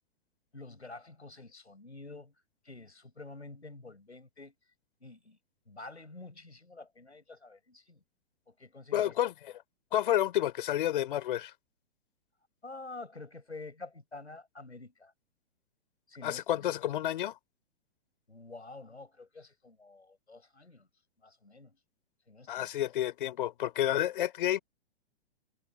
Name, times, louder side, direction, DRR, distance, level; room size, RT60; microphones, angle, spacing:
voice 1, 0.5-2.3 2.6-4.5 5.0-5.4 5.7-8.0 8.5-9.2 12.6-15.1 16.1-16.7 18.3-20.9 21.2-21.8 22.3-22.7, left 3 dB, 85° left, 7.2 m, -48 dB
voice 2, 8.9-9.3 9.9-11.5 16.2-17.4 22.5-24.6, left 12 dB, 50° left, 3.7 m, -30 dB
figure-of-eight pair, 115°, 33 cm